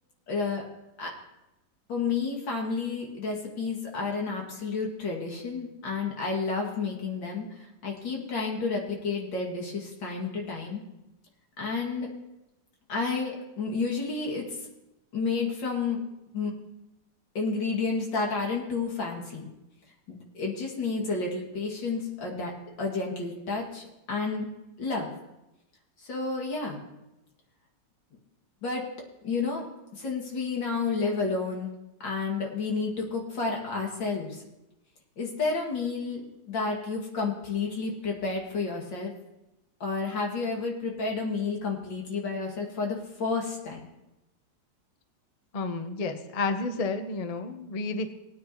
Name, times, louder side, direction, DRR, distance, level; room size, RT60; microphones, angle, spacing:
voice 1, 0.3-0.6 1.0-1.1 1.9-10.8 11.6-12.1 12.9-14.5 15.1-16.0 16.3-16.5 17.3-19.4 20.1-22.5 22.8-24.5 24.8-25.1 26.0-26.8 28.6-28.8 29.2-29.7 30.0-31.7 32.0-34.4 35.2-39.1 39.8-43.8, left 4 dB, 80° left, 0 dB, 2.9 m, -31 dB
voice 2, 45.5-48.1, left 3 dB, 50° left, 8 dB, 0.4 m, -31 dB
19.5 x 9.3 x 3.0 m, 0.95 s
omnidirectional pair, 2.0 m